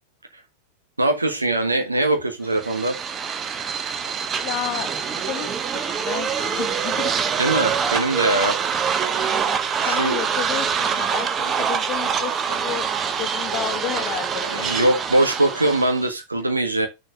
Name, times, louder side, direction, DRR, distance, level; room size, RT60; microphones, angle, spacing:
voice 1, 1.0-3.0 7.4-8.6 9.8-10.2 12.5-12.6 14.4-16.9, right 2 dB, 80° right, 1.5 m, -22 dB
sound 1, 2.5-16.1, right 7 dB, 25° right, 1.0 m, -25 dB
voice 2, 4.4-7.1 9.3-9.6 9.8-12.9 13.2-14.9, left 12 dB, 40° left, 1.0 m, -32 dB
6.2 x 4.6 x 6.6 m
figure-of-eight pair, 90°, 0 cm